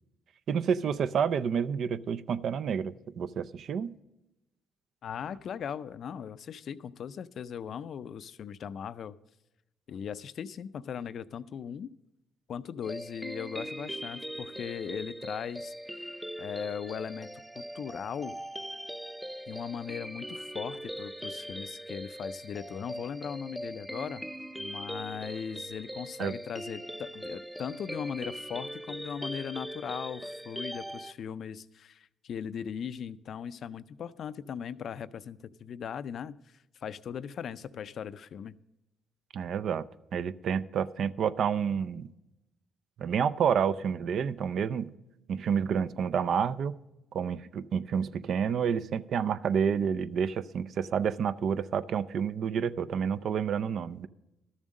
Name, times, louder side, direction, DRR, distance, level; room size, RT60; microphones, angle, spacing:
voice 1, 0.5-3.9 26.2-26.3 39.3-39.9 40.1-42.1 43.0-44.9 45.3-46.7 47.1-54.1, right 7 dB, 65° right, 15 dB, 0.4 m, -29 dB
voice 2, 5.0-9.2 9.9-11.9 12.5-17.3 17.5-18.3 19.5-24.2 24.6-38.6, left 8 dB, 60° left, 15 dB, 0.4 m, -39 dB
sound 1, 12.8-31.1, equal, ahead, 0.5 m, -40 dB
12.5 x 7.2 x 6.4 m, 0.94 s
cardioid pair, 90°, 0 cm